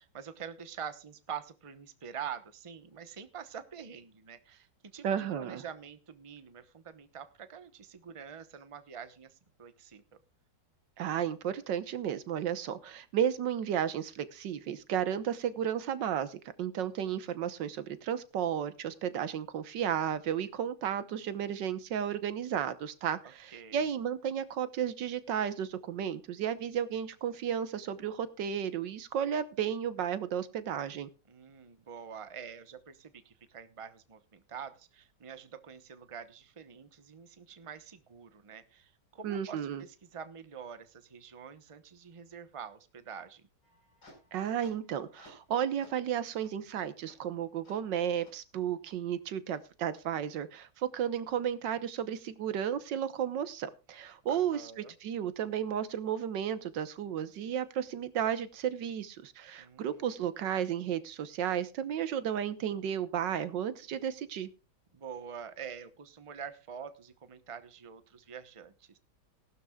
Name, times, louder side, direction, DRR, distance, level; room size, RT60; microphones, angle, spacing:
voice 1, 0.0-10.2 23.2-23.9 31.3-43.4 54.3-54.9 59.6-60.2 64.9-69.0, right 7 dB, 25° right, 11 dB, 0.8 m, -46 dB
voice 2, 5.0-5.6 11.0-31.1 39.2-39.8 44.3-64.5, right 9 dB, 85° right, 13 dB, 1.7 m, -33 dB
sound 1, 43.6-45.5 45.8-46.0 46.4-46.5 47.1-47.2 47.6-47.8 48.2-48.3 48.9-49.0 49.5-49.6, left 1 dB, 80° left, 5.2 m, -58 dB
18.5 x 12.0 x 2.3 m, 0.31 s
omnidirectional pair, 1.9 m